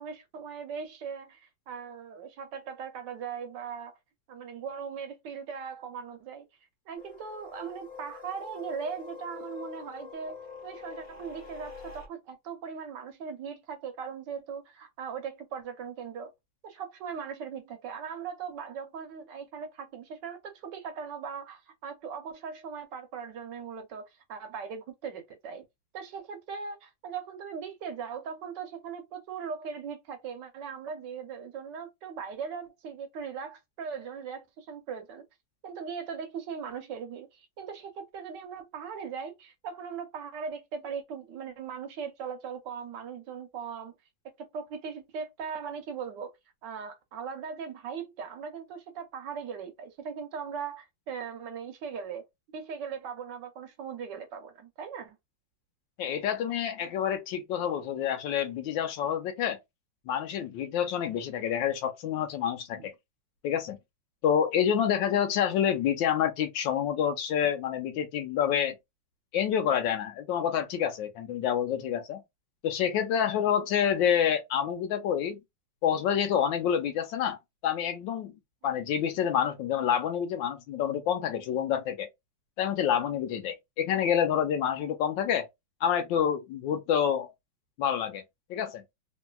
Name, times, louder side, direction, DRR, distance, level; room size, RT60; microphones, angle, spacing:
voice 1, 0.0-4.0 4.3-6.4 6.9-16.3 16.6-25.6 25.9-35.2 35.6-43.9 44.2-46.3 46.6-55.2 62.8-62.9 78.6-78.7, right 6 dB, 70° right, 1.2 m, -39 dB
sound 1, 7.0-12.1, left 6 dB, 35° left, 1.2 m, -45 dB
voice 2, 56.0-59.6 60.1-62.9 63.4-63.8 64.2-68.7 69.3-72.2 72.6-75.4 75.8-77.4 77.6-78.3 78.6-82.1 82.6-85.5 85.8-87.3 87.8-88.2 88.5-88.8, left 9 dB, 75° left, 1.3 m, -28 dB
3.1 x 2.7 x 2.2 m
omnidirectional pair, 2.2 m